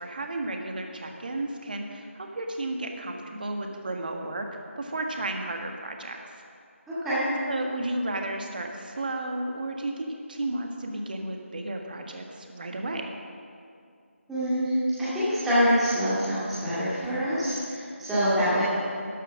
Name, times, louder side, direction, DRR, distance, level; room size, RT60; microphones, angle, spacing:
voice 1, 0.0-6.2 7.5-13.1, right 2 dB, 40° right, 3 dB, 1.6 m, -33 dB
voice 2, 6.9-7.2 14.3-18.6, equal, 5° right, -13 dB, 2.2 m, -25 dB
12.5 x 11.0 x 6.3 m, 2.4 s
figure-of-eight pair, 170°, 7 cm